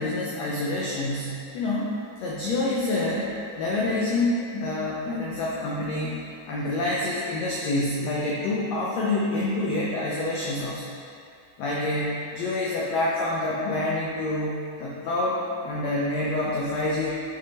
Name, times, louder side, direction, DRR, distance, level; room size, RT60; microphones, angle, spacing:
voice 1, 0.0-6.1 6.5-10.9 11.6-17.1, left 2 dB, 80° left, -5 dB, 1.5 m, -27 dB
8.8 x 6.4 x 2.9 m, 2.5 s
omnidirectional pair, 3.9 m